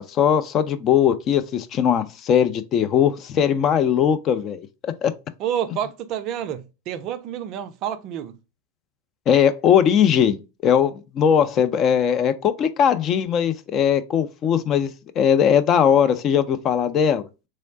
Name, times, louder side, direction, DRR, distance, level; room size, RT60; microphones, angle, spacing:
voice 1, 0.0-5.1 9.3-17.3, left 8 dB, 30° left, 0.4 m, -20 dB
voice 2, 5.4-8.4, right 9 dB, 40° right, 0.4 m, -29 dB
3.7 x 3.1 x 2.5 m
figure-of-eight pair, 90°, 0 cm